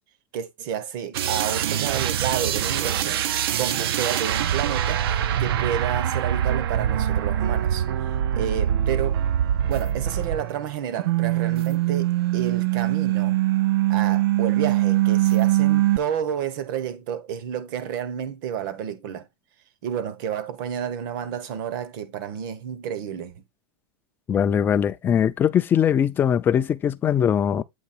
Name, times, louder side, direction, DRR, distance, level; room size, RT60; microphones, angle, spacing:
voice 1, 0.3-3.2 3.6-5.0 5.4-7.9 8.4-9.2 9.7-13.4 13.9-19.3 19.8-23.4, right 9 dB, 60° right, 1.0 m, -30 dB
sound 1, 1.1-10.7 11.0-16.0, right 12 dB, 80° right, 0.6 m, -23 dB
voice 2, 24.3-27.6, left 8 dB, 15° left, 0.3 m, -21 dB
7.9 x 2.8 x 4.2 m
supercardioid pair, 150°, 12 cm